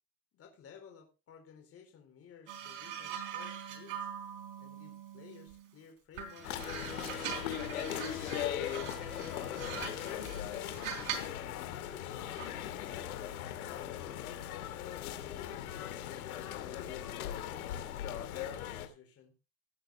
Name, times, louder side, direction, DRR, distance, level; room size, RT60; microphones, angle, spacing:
voice 1, 0.3-4.1 4.6-7.0 9.2-13.4 14.2-17.7 18.3-19.3, left 7 dB, 35° left, 3 dB, 4.1 m, -55 dB
sound 1, 2.5-5.7 6.1-11.4 12.4-12.6, right 8 dB, 65° right, 3.5 m, -43 dB
Bowed string instrument, 6.3-10.6, left 1 dB, ahead, 1.6 m, -49 dB
sound 2, 6.4-18.9, left 11 dB, 90° left, 2.4 m, -39 dB
16.5 x 8.7 x 3.5 m, 0.29 s
supercardioid pair, 130°, 42 cm